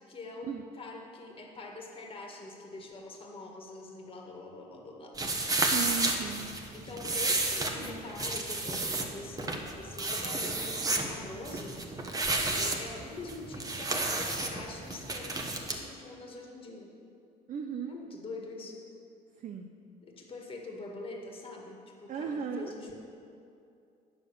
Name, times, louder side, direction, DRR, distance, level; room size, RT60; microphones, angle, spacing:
voice 1, 0.0-0.5 0.8-5.1 6.7-11.8 12.5-15.5 15.8-16.9 17.8-18.8 20.0-23.0, left 2 dB, 30° left, 0 dB, 1.8 m, -44 dB
sound 1, 5.2-15.8, right 2 dB, 20° right, 1.1 m, -32 dB
voice 2, 5.6-6.5 17.5-18.0 19.4-19.7 22.1-22.7, right 7 dB, 50° right, 4 dB, 0.6 m, -36 dB
9.3 x 6.9 x 6.8 m, 2.6 s
cardioid pair, 110°, 17 cm